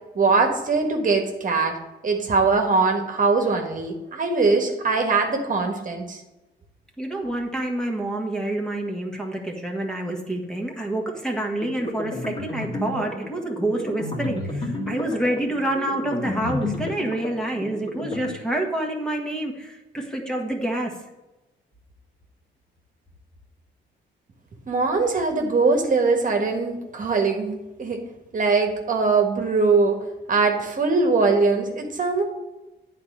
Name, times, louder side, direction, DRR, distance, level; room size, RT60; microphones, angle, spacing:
voice 1, 0.1-1.8 2.0-6.2 24.7-28.0 28.3-30.0 30.3-32.2, right 4 dB, 40° right, 3 dB, 1.5 m, -21 dB
voice 2, 7.0-20.9, right 1 dB, 5° left, 1 dB, 1.6 m, -27 dB
sound 1, 11.6-18.3, left 2 dB, 30° left, 2.3 m, -31 dB
8.9 x 4.3 x 7.3 m, 1.0 s
cardioid pair, 90°, 20 cm